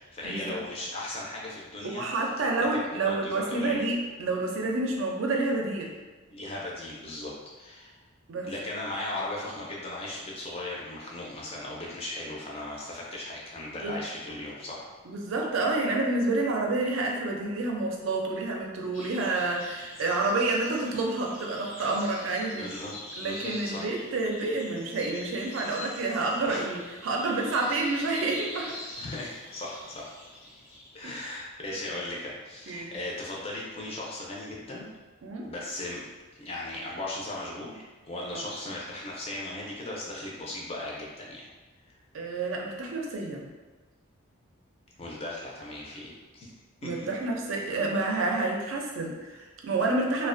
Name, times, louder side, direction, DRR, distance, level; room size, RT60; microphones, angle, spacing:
voice 1, 0.0-2.0 2.6-2.7 3.0-3.8 6.3-7.3 7.6-7.9 8.4-14.9 22.6-22.9 23.2-23.8 26.4-26.7 29.0-30.1 30.9-34.9 35.4-36.0 36.4-41.5 45.0-46.5 46.8-47.1, left 1 dB, 30° left, -4 dB, 0.4 m, -37 dB
voice 2, 1.8-5.9 8.3-8.5 13.8-14.0 15.1-22.7 23.2-28.8 31.0-31.1 32.7-32.9 35.2-35.5 38.3-38.4 42.1-43.5 46.8-50.3, right 2 dB, 70° right, 0 dB, 0.4 m, -29 dB
sound 1, 18.9-31.0, left 1 dB, 75° left, 0.7 m, -44 dB
2.3 x 2.1 x 2.5 m, 1.2 s
head